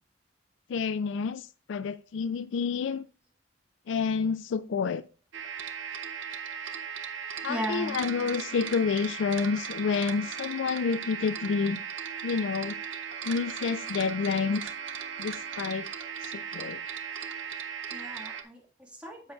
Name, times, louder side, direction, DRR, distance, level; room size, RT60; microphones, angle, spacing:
voice 1, 0.7-3.0 3.9-5.0 7.4-11.8 12.2-12.8 13.2-14.6 15.2-15.9 16.2-16.8, left 5 dB, 70° left, 0.3 m, -29 dB
voice 2, 4.5-4.8 7.5-8.0 17.9-19.3, equal, 5° right, 1.7 m, -37 dB
sound 1, 5.3-18.4, right 7 dB, 75° right, 0.7 m, -37 dB
10.0 x 7.0 x 2.3 m
head